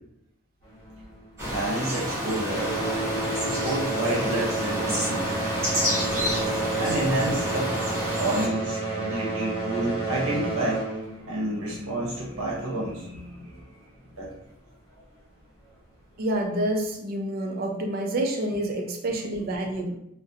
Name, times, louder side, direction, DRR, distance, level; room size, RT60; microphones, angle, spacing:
sound 1, 0.6-2.0 2.3-12.6 13.4-13.5 14.2-14.3 14.9-15.0, right 2 dB, 15° left, 1.1 m, -30 dB
sound 2, 1.4-8.5, equal, 10° right, 0.9 m, -29 dB
voice 1, 1.4-2.7 3.3-5.3 6.8-7.7 8.2-10.8 11.2-13.6 14.2-14.3, right 1 dB, 80° right, -4 dB, 0.7 m, -29 dB
voice 2, 16.2-20.0, right 1 dB, 45° right, 2 dB, 0.4 m, -28 dB
2.4 x 2.1 x 2.7 m, 0.77 s
head